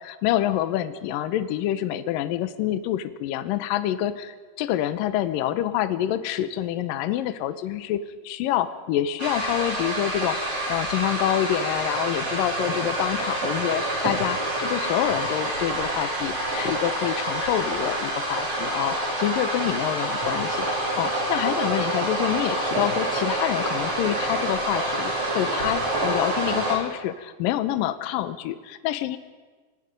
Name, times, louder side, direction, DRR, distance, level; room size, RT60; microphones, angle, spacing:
voice 1, 0.0-8.0 8.2-10.4 10.7-29.2, left 12 dB, 90° left, 11 dB, 1.9 m, -27 dB
sound 1, 9.2-26.8, right 1 dB, 35° right, 6.2 m, -27 dB
28.5 x 24.5 x 5.3 m, 1.4 s
omnidirectional pair, 5.2 m